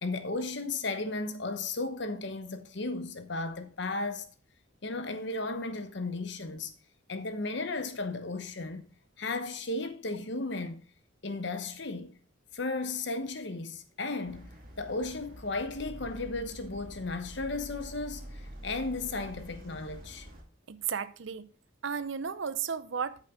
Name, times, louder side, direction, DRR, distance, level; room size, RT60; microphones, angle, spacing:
voice 1, 0.0-4.3 4.8-6.7 7.1-8.9 9.2-10.8 11.2-12.2 12.5-20.3, left 3 dB, 55° left, 1.0 m, -35 dB
sound 1, 14.2-20.4, equal, 45° right, 2.0 m, -46 dB
voice 2, 20.7-21.5 21.8-23.2, right 7 dB, 65° right, 0.6 m, -34 dB
8.7 x 7.4 x 3.7 m
head